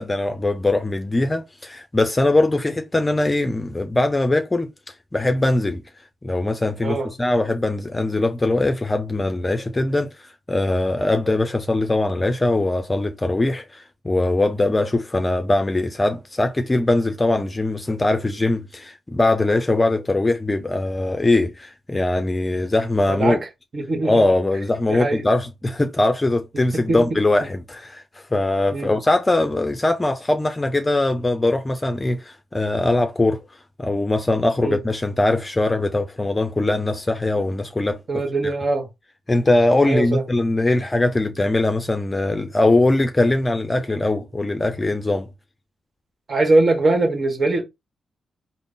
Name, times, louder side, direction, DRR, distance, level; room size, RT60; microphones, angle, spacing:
voice 1, 0.0-4.7 5.1-5.8 6.2-23.4 24.0-33.4 33.8-38.2 39.3-45.3, left 2 dB, 25° left, 0.5 m, -21 dB
voice 2, 23.1-23.4 23.7-24.3 24.9-25.2 26.7-27.2 28.7-28.9 34.6-34.8 38.1-38.9 39.8-40.2 46.3-47.6, right 2 dB, 50° right, 1.3 m, -21 dB
3.7 x 2.0 x 3.7 m
supercardioid pair, 50°, 0 cm